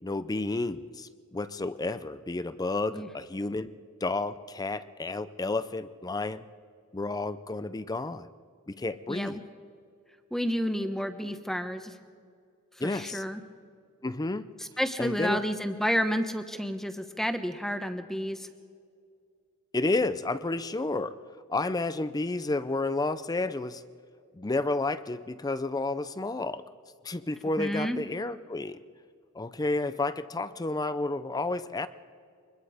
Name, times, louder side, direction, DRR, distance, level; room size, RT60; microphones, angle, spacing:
voice 1, 0.0-3.7 4.0-6.4 6.9-8.3 8.7-9.4 12.8-13.2 14.0-14.4 15.0-15.4 19.7-21.2 21.5-23.8 24.3-26.6 27.0-28.8 29.3-31.9, left 2 dB, 15° left, 14 dB, 0.5 m, -31 dB
voice 2, 9.1-9.4 10.3-11.9 12.8-13.4 14.6-18.5 27.6-28.0, equal, ahead, 9 dB, 0.9 m, -30 dB
25.0 x 21.0 x 5.0 m, 2.2 s
head